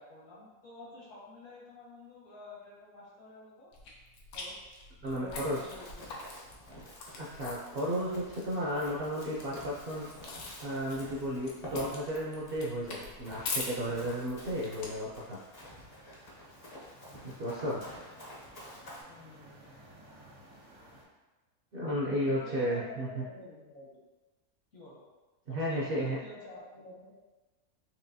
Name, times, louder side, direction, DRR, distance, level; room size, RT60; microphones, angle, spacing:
voice 1, 0.0-3.7 4.3-4.8 5.1-6.4 17.7-18.0 19.1-19.8 22.2-24.0 24.7-25.0 25.5-27.1, left 2 dB, 65° left, -6 dB, 1.7 m, -49 dB
sound 1, 3.7-15.3, left 3 dB, 85° left, 1.2 m, -44 dB
voice 2, 5.0-5.6 7.2-10.1 10.6-15.4 17.2-17.8 21.7-23.2 25.5-26.2, equal, 55° right, -5 dB, 0.6 m, -33 dB
Run, 5.3-19.0, equal, 35° left, 0.7 m, -49 dB
sound 2, 15.6-21.0, right 1 dB, 80° right, 1.6 m, -56 dB
4.6 x 2.9 x 2.7 m, 1.2 s
omnidirectional pair, 1.5 m